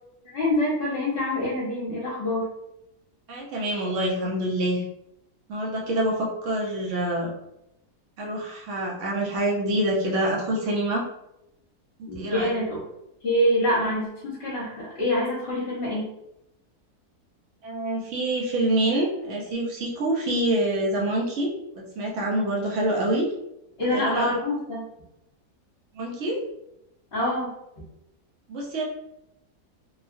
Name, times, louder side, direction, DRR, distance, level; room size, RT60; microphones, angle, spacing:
voice 1, 0.3-2.5 12.1-12.8 13.2-16.1 23.8-24.8 27.1-27.5, left 1 dB, 45° left, -7 dB, 1.1 m, -25 dB
voice 2, 3.3-4.8 5.5-7.3 8.2-11.0 12.0-12.5 17.6-21.5 21.8-23.3 23.9-24.3 25.9-26.4 28.5-28.8, right 1 dB, 55° right, -2 dB, 0.9 m, -26 dB
3.0 x 2.3 x 2.5 m, 0.84 s
omnidirectional pair, 1.7 m